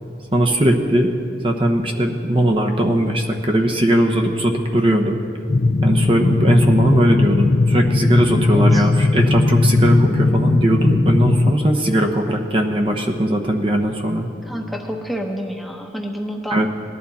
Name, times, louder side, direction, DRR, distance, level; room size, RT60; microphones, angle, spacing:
voice 1, 0.3-1.1 1.4-5.2 5.8-14.3 16.5-16.7, right 1 dB, 30° right, 3 dB, 0.9 m, -19 dB
sound 1, 5.5-11.6, left 2 dB, 35° left, 0.3 m, -17 dB
voice 2, 8.5-8.9 14.5-16.6, equal, ahead, 2 dB, 1.0 m, -29 dB
19.0 x 11.0 x 4.2 m, 2.6 s
head